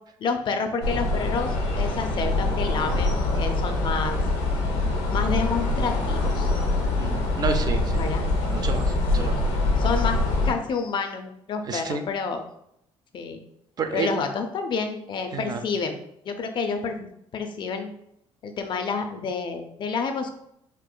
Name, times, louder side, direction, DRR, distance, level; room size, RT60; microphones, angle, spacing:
voice 1, 0.2-4.2 5.1-6.5 7.9-8.3 9.2-9.5 9.8-10.2 10.4-12.4 13.1-13.4 13.9-16.0 16.2-17.1 17.3-17.9 18.4-20.3, left 5 dB, 50° left, 6 dB, 0.4 m, -29 dB
sound 1, 0.8-10.5, left 2 dB, 75° left, 0.9 m, -24 dB
voice 2, 7.0-8.0 8.5-8.8 9.1-9.3 11.7-12.0 13.8-14.1 15.3-15.6, right 4 dB, 40° right, 7 dB, 0.4 m, -29 dB
4.4 x 2.4 x 2.2 m, 0.75 s
cardioid pair, 100°, 11 cm